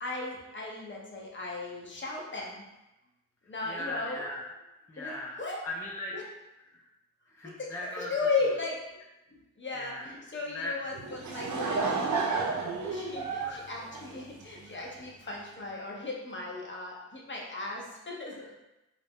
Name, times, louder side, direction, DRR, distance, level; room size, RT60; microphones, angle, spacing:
voice 1, 0.0-2.6 3.5-4.3 5.0-5.6 6.1-6.2 7.6-9.0 9.3-12.6 12.9-18.6, left 3 dB, 35° left, -2 dB, 0.8 m, -36 dB
voice 2, 3.6-4.4 4.9-6.2 6.6-6.8 7.3-8.1 9.7-10.1 10.5-10.7 13.4-13.6 14.7-14.9 18.3-18.5, left 2 dB, 10° left, -2 dB, 0.4 m, -39 dB
Laughter / Crowd, 10.9-14.7, right 4 dB, 60° right, 0.6 m, -31 dB
2.5 x 2.0 x 3.4 m, 0.98 s
cardioid pair, 50°, 33 cm